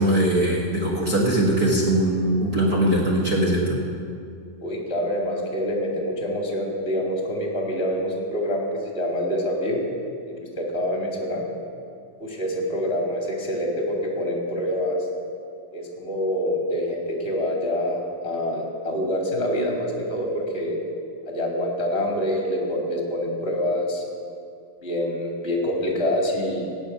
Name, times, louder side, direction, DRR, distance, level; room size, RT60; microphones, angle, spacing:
voice 1, 0.0-3.8, right 1 dB, 65° right, -3 dB, 0.9 m, -21 dB
voice 2, 4.6-9.8 10.2-11.4 12.2-15.1 15.7-20.8 21.3-24.0 24.8-26.7, equal, 20° left, -1 dB, 1.9 m, -26 dB
17.0 x 6.3 x 9.2 m, 2.4 s
omnidirectional pair, 4.2 m